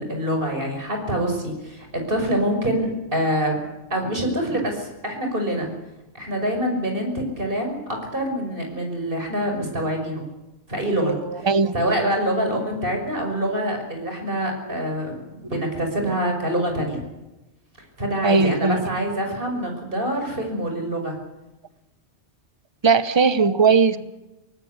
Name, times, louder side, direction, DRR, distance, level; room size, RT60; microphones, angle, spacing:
voice 1, 0.0-3.6 3.9-5.7 6.1-10.2 10.7-11.5 11.7-17.0 18.0-21.2 23.9-24.0, right 1 dB, 50° right, 3 dB, 6.1 m, -25 dB
voice 2, 11.0-11.7 18.2-18.9 22.8-24.0, right 5 dB, 25° right, 14 dB, 0.9 m, -19 dB
24.0 x 19.5 x 8.2 m, 0.98 s
omnidirectional pair, 1.2 m